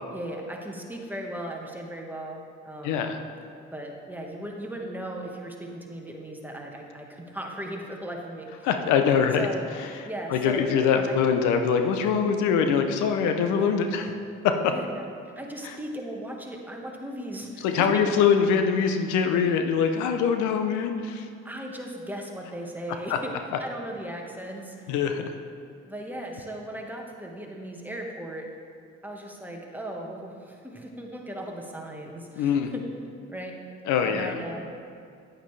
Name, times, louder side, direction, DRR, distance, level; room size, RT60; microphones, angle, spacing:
voice 1, 0.1-3.1 3.7-8.7 9.4-9.7 10.0-10.7 10.9-11.2 13.5-13.6 14.7-15.0 15.4-17.9 21.4-23.3 23.6-24.9 25.8-28.5 29.0-32.8 33.3-33.5 34.0-34.7, right 1 dB, 5° right, 0 dB, 1.4 m, -37 dB
voice 2, 2.8-3.2 8.6-9.5 10.3-14.1 14.4-14.7 15.6-15.8 17.6-21.3 23.1-23.2 23.5-23.6 24.9-25.3 32.4-32.7 33.9-34.3, left 6 dB, 85° left, 6 dB, 0.7 m, -23 dB
9.0 x 8.9 x 3.3 m, 2.4 s
supercardioid pair, 70°, 29 cm